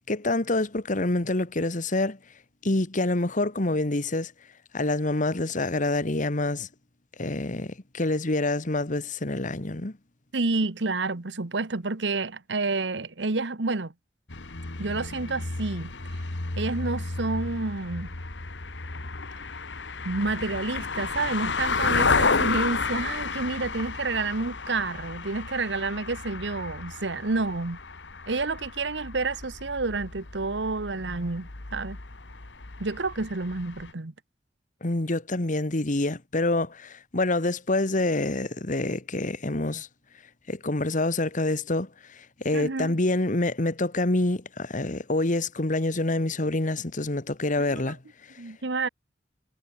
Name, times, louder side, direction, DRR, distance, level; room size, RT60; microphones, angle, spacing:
voice 1, 0.1-2.2 2.6-4.3 4.7-6.7 7.2-10.0 34.8-39.9 40.5-48.0, left 2 dB, 45° left, 1.6 m, -27 dB
voice 2, 10.3-13.9 14.8-15.9 16.6-18.1 20.0-27.8 28.3-32.0 32.8-34.1 42.5-43.0 47.7-47.9 48.4-48.9, right 3 dB, 80° right, 1.2 m, -29 dB
sound 1, 14.3-33.9, left 4 dB, 90° left, 1.8 m, -32 dB
head